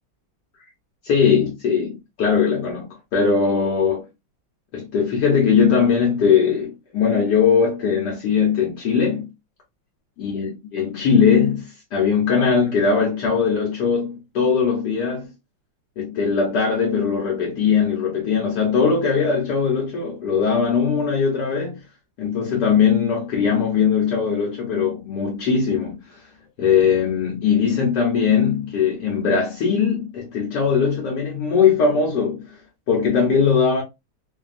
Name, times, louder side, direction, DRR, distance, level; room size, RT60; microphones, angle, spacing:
voice 1, 1.0-2.8 3.1-4.1 4.7-9.3 10.2-15.3 16.0-21.8 22.2-26.2 26.6-32.6 32.9-33.8, left 6 dB, 70° left, 1.3 m, -20 dB
3.1 x 2.2 x 2.4 m
omnidirectional pair, 2.1 m